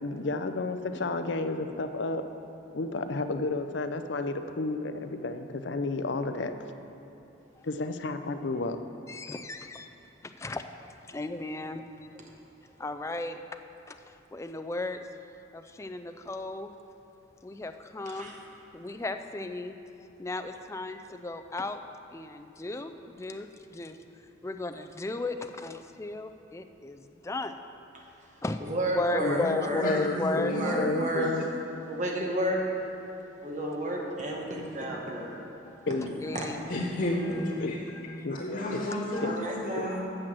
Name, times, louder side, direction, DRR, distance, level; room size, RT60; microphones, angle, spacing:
voice 1, 0.0-2.3 2.7-6.5 7.6-8.8 29.2-29.6 29.8-31.4 35.9-36.3 36.7-36.8 37.6-37.7 38.2-38.4 38.7-38.8 39.2-39.3 39.8-39.9, left 3 dB, 65° left, 8 dB, 0.5 m, -31 dB
voice 2, 9.1-9.9 10.2-10.7 11.0-11.8 12.8-13.4 13.9-15.0 15.5-16.7 17.4-18.3 18.7-19.7 20.2-21.8 22.1-24.0 24.4-27.6 28.4-28.6 28.9-30.9 35.7-35.9 36.2-36.9 38.1-38.3 39.1-39.4, left 2 dB, 15° left, 7 dB, 0.3 m, -35 dB
voice 3, 28.6-29.9 30.5-31.3 31.9-32.6 33.4-35.5 36.4-36.5 39.2-40.0, right 1 dB, 35° right, -1 dB, 1.2 m, -31 dB
voice 4, 29.7-31.4 36.7-37.8 38.3-40.0, left 1 dB, 45° left, -6 dB, 1.9 m, -32 dB
8.8 x 6.1 x 7.6 m, 2.8 s
head